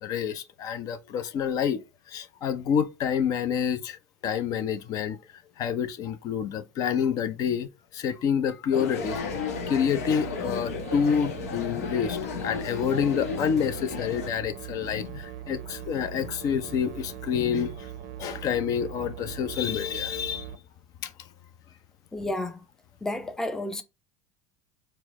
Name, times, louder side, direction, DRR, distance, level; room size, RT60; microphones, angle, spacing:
voice 1, 0.0-1.8 2.1-5.2 5.6-9.2 9.4-17.9 18.2-20.5 21.0-21.1, left 7 dB, 50° left, 0.6 m, -28 dB
sound 1, 8.7-14.3, left 6 dB, 80° left, 0.8 m, -34 dB
sound 2, 9.0-20.6, right 11 dB, 65° right, 0.5 m, -41 dB
voice 2, 22.1-22.6 23.0-23.8, left 1 dB, 5° left, 0.6 m, -31 dB
4.5 x 2.1 x 3.6 m
hypercardioid pair, 90°, 8 cm